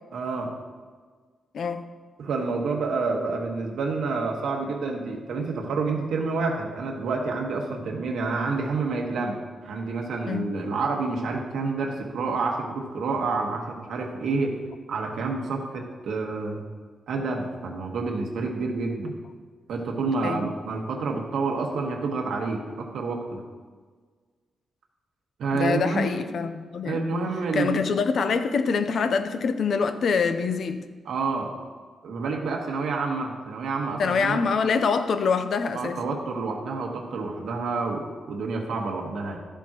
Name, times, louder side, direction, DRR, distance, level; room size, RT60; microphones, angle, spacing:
voice 1, 0.1-0.5 2.2-14.5 14.9-16.6 17.1-19.2 19.7-23.4 25.4-26.1 26.8-27.9 31.0-31.5 32.0-34.4 35.7-39.4, right 4 dB, 85° right, 1 dB, 1.4 m, -28 dB
voice 2, 1.5-1.8 10.3-10.5 20.2-20.4 25.5-27.1 27.5-30.8 34.0-36.0, left 5 dB, 60° left, 9 dB, 0.6 m, -25 dB
13.0 x 7.1 x 3.0 m, 1.5 s
wide cardioid pair, 140°, 0 cm